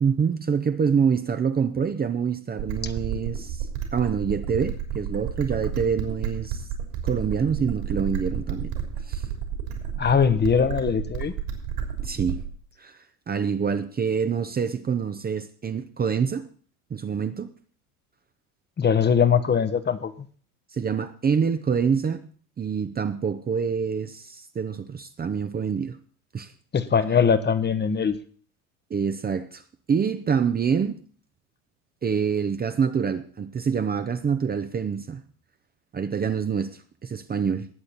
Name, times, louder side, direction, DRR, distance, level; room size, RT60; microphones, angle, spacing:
voice 1, 0.0-6.7 7.0-8.7 9.1-9.3 12.0-12.4 12.8-13.0 13.3-16.5 16.9-17.5 20.7-22.3 22.6-26.0 26.3-26.5 28.9-29.6 29.9-31.0 32.0-35.2 35.9-37.7, right 6 dB, 20° right, 0.8 m, -26 dB
sound 1, 2.6-12.6, right 8 dB, 65° right, 3.3 m, -31 dB
voice 2, 10.0-11.3 18.8-20.1 26.7-28.2, left 6 dB, 20° left, 1.0 m, -21 dB
20.0 x 8.1 x 4.1 m
hypercardioid pair, 75°, 46 cm